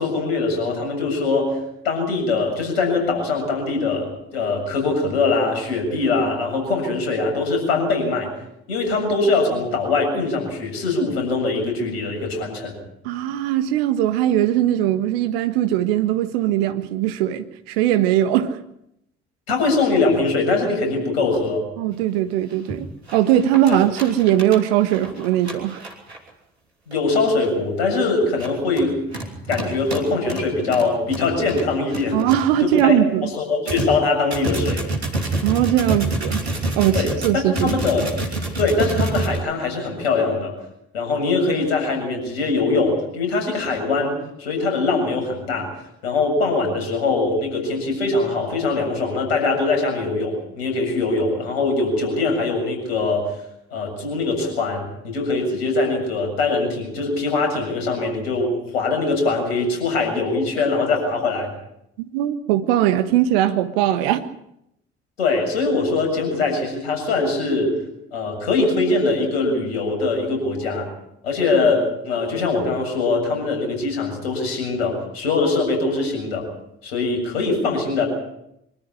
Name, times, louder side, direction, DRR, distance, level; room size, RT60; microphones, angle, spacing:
voice 1, 0.0-1.6 1.8-8.3 8.7-12.8 19.5-21.7 23.7-23.8 26.9-29.0 29.5-32.2 32.6-33.0 33.3-34.8 36.9-37.1 37.3-38.1 38.6-40.5 40.9-45.7 46.0-53.3 53.7-61.5 65.2-67.8 68.1-70.9 71.2-76.5 76.8-78.1, left 3 dB, 75° left, 2 dB, 7.5 m, -22 dB
voice 2, 13.0-18.6 21.8-22.9 23.1-25.8 32.1-33.3 35.4-36.4 36.7-37.8 62.1-64.3, right 12 dB, 65° right, 11 dB, 1.5 m, -20 dB
sound 1, 22.0-22.1 22.5-22.8 23.1-26.3 26.9-27.0 27.4-27.6 28.2-32.8 33.2-33.3 33.7-39.4, right 2 dB, 85° right, 3.3 m, -27 dB
24.5 x 13.0 x 10.0 m, 0.81 s
figure-of-eight pair, 50°, 32 cm